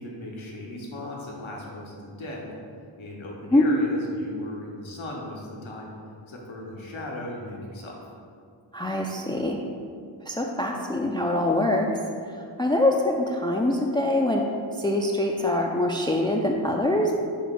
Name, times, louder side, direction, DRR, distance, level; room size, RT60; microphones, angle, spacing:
voice 1, 0.0-2.6 3.0-5.9 6.3-7.9, left 1 dB, 80° left, -2 dB, 1.1 m, -37 dB
voice 2, 8.7-9.6 10.3-11.9 12.6-14.5 14.8-17.2, left 1 dB, 10° left, 0 dB, 0.4 m, -24 dB
6.6 x 3.0 x 5.2 m, 2.3 s
wide cardioid pair, 75°, 46 cm